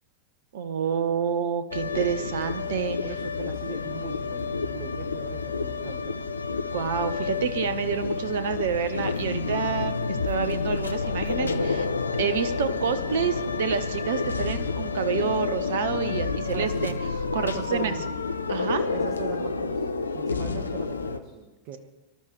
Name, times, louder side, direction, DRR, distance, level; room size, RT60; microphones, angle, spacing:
voice 1, 0.5-3.0 6.7-11.9 12.2-16.9 17.3-17.9 18.5-18.9, right 7 dB, 60° right, 11 dB, 0.8 m, -28 dB
sound 1, 1.7-21.2, left 4 dB, 75° left, 0.7 m, -29 dB
voice 2, 2.8-6.2 16.5-17.0 17.4-18.1 18.9-21.8, right 7 dB, 40° right, 6 dB, 1.2 m, -40 dB
24.5 x 12.0 x 3.2 m, 1.1 s
figure-of-eight pair, 90°, 0 cm